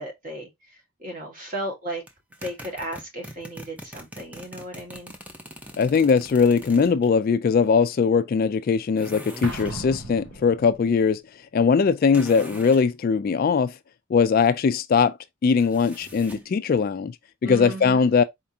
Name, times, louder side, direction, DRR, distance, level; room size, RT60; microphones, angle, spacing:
voice 1, 0.0-2.0 2.4-5.1 17.4-18.1, right 1 dB, 40° right, 1.6 m, -35 dB
sound 1, 2.1-7.1 9.0-9.8 12.1-12.9 15.6-16.5, equal, 5° right, 0.6 m, -42 dB
voice 2, 5.8-11.2 11.5-13.8 14.1-15.1 15.4-17.2 17.4-18.2, left 5 dB, 45° left, 0.3 m, -20 dB
Explosion, 9.4-11.1, right 2 dB, 60° right, 1.0 m, -35 dB
4.4 x 3.5 x 2.7 m
head